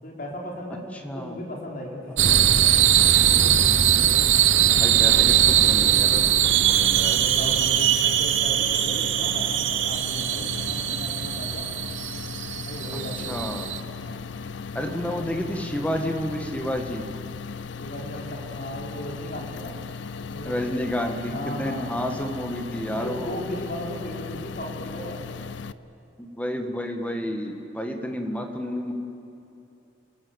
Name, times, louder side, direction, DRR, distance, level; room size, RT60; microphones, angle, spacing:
voice 1, 0.0-0.8 1.1-2.3 4.5-4.9 7.1-11.7 12.5-13.4 14.0-14.3 14.8-15.3 17.8-19.7 20.3-20.6 21.3-21.9 22.9-25.3 28.1-28.2, equal, 50° left, -1 dB, 4.2 m, -36 dB
voice 2, 0.9-1.4 3.9-4.3 4.8-7.2 13.3-13.8 14.7-17.1 20.4-23.4 26.2-28.9, equal, 5° left, 4 dB, 1.6 m, -30 dB
sound 1, 2.2-13.8, right 10 dB, 75° right, 1.0 m, -21 dB
sound 2, 6.7-25.7, left 5 dB, 70° left, 0.6 m, -37 dB
28.0 x 21.0 x 8.1 m, 2.9 s
head